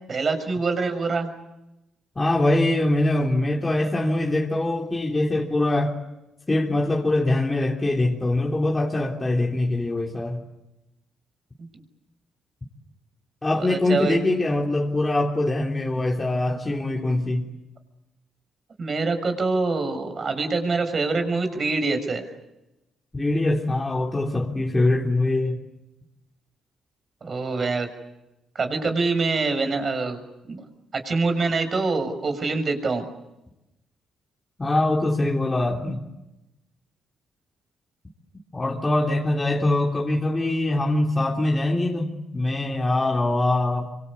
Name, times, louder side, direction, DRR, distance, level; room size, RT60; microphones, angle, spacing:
voice 1, 0.1-1.3 11.6-11.7 13.6-14.2 16.5-16.6 18.8-22.2 27.2-27.9 28.5-30.2 30.4-30.6 30.9-33.0, right 3 dB, 40° right, 9 dB, 6.2 m, -25 dB
voice 2, 2.1-6.0 6.5-10.4 13.4-17.5 23.1-25.6 34.6-36.0 38.5-43.9, left 2 dB, 20° left, -1 dB, 3.3 m, -23 dB
26.0 x 26.0 x 8.4 m, 0.95 s
cardioid pair, 90°, 0 cm